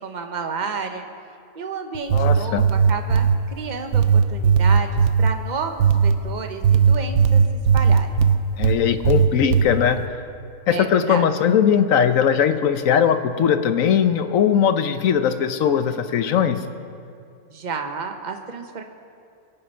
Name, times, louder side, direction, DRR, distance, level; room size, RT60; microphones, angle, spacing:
voice 1, 0.0-1.0 1.5-7.4 7.7-8.2 10.7-11.3 17.5-18.8, right 5 dB, 35° right, 5 dB, 1.0 m, -31 dB
sound 1, 1.9-3.4 3.9-5.3 5.8-6.2 6.6-8.8 9.0-9.7, right 6 dB, 80° right, 1.2 m, -16 dB
voice 2, 2.1-2.6 8.6-10.0 10.7-16.6, left 8 dB, 70° left, 9 dB, 1.1 m, -19 dB
23.0 x 8.9 x 5.6 m, 2.4 s
omnidirectional pair, 1.5 m